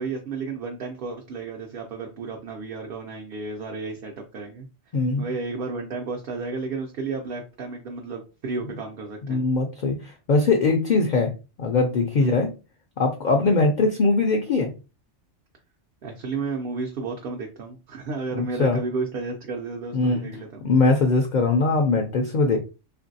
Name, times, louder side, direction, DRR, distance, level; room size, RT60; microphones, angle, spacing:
voice 1, 0.0-4.7 5.2-9.4 12.2-12.5 16.0-20.6, right 4 dB, 60° right, 1 dB, 0.7 m, -32 dB
voice 2, 4.9-5.2 9.3-11.3 11.6-12.5 13.0-14.7 18.3-18.8 19.9-20.3 20.6-22.6, left 3 dB, 60° left, 3 dB, 0.5 m, -21 dB
3.1 x 2.5 x 2.6 m, 0.31 s
omnidirectional pair, 1.2 m